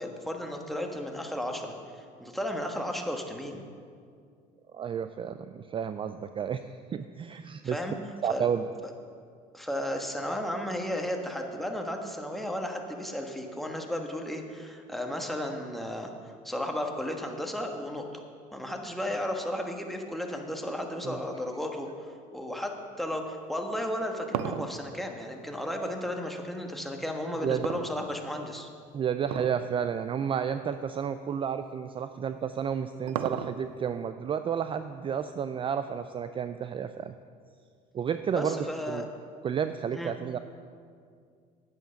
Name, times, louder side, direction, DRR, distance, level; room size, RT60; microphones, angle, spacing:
voice 1, 0.0-1.7 2.2-3.6 7.6-8.0 8.3-8.5 9.5-18.2 18.5-28.7 38.3-39.0 39.9-40.1, left 1 dB, ahead, 2 dB, 1.3 m, -34 dB
voice 2, 4.7-6.6 6.9-7.8 8.2-8.7 21.0-21.2 27.4-27.6 28.9-37.2 37.9-39.1 39.4-40.4, right 8 dB, 30° right, 10 dB, 0.4 m, -31 dB
sound 1, 23.8-26.3 27.6-28.5 29.2-29.7 30.0-30.1 30.9-31.0 32.4-33.9, right 10 dB, 85° right, 0.5 m, -35 dB
9.1 x 9.0 x 5.7 m, 2.2 s
supercardioid pair, 85°, 18 cm